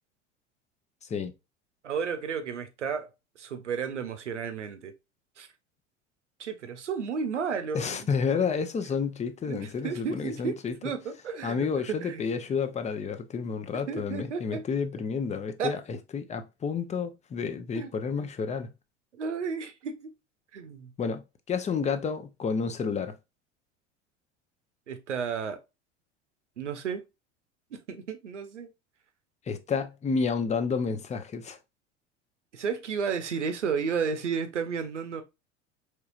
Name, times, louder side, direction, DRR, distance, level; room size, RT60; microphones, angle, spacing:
voice 1, 1.8-3.1 3.4-4.9 5.4-5.5 6.4-8.1 9.5-12.2 13.9-14.6 15.6-15.8 17.7-17.9 19.2-20.1 20.5-20.9 24.9-25.6 26.6-27.0 27.7-28.7 32.5-35.2, right 6 dB, 85° right, 0.8 m, -32 dB
voice 2, 7.7-10.8 11.4-18.7 21.0-21.2 21.5-23.1 29.5-31.6, left 5 dB, 20° left, 0.6 m, -30 dB
4.5 x 3.2 x 2.4 m
figure-of-eight pair, 75°, 35 cm